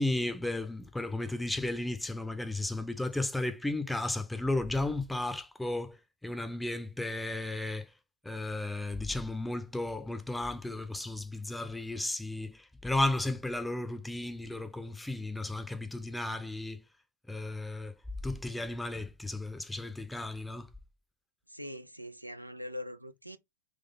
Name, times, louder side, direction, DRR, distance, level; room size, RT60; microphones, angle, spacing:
voice 1, 0.0-6.0 6.2-7.9 8.2-16.8 17.3-17.9 18.2-20.7, left 2 dB, 5° left, 0.7 m, -34 dB
voice 2, 21.5-23.4, left 1 dB, 90° right, 0.6 m, -42 dB
3.9 x 3.1 x 3.7 m
figure-of-eight pair, 90°, 0 cm